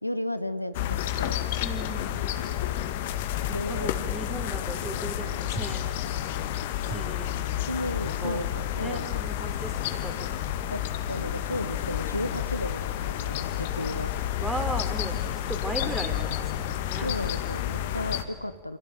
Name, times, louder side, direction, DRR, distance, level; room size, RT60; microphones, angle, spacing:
voice 1, 0.0-1.4 3.5-3.9 7.7-9.1 10.7-10.8 11.1-14.1 17.0-18.8, left 1 dB, 85° left, 13 dB, 1.0 m, -34 dB
sound 1, 0.7-18.2, left 11 dB, 50° left, 2.0 m, -30 dB
voice 2, 1.6-2.4 3.5-6.0 6.9-7.7 8.2-8.5 8.8-10.4 14.4-17.1, right 2 dB, 10° right, 6 dB, 4.2 m, -37 dB
28.0 x 26.5 x 7.8 m, 1.5 s
figure-of-eight pair, 90°, 0 cm